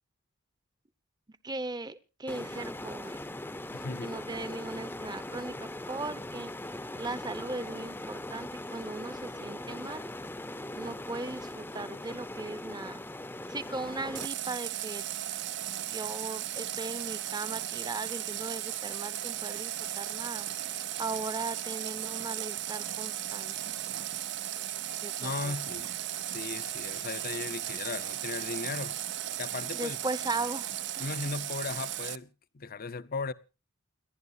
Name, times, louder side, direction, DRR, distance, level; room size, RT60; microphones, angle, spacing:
voice 1, 1.4-3.2 4.0-6.5 7.0-10.1 10.8-13.0 13.5-15.0 15.9-23.7 25.0-25.6 29.7-31.1, right 3 dB, 20° right, 0.8 m, -38 dB
sound 1, 2.3-14.3, left 1 dB, 10° left, 0.7 m, -40 dB
voice 2, 3.7-4.1 25.2-25.9 26.3-29.0 29.4-30.0 31.0-33.3, left 4 dB, 45° left, 0.7 m, -37 dB
Water tap faucet, 14.1-32.2, right 11 dB, 55° right, 0.6 m, -36 dB
29.0 x 11.5 x 2.7 m
head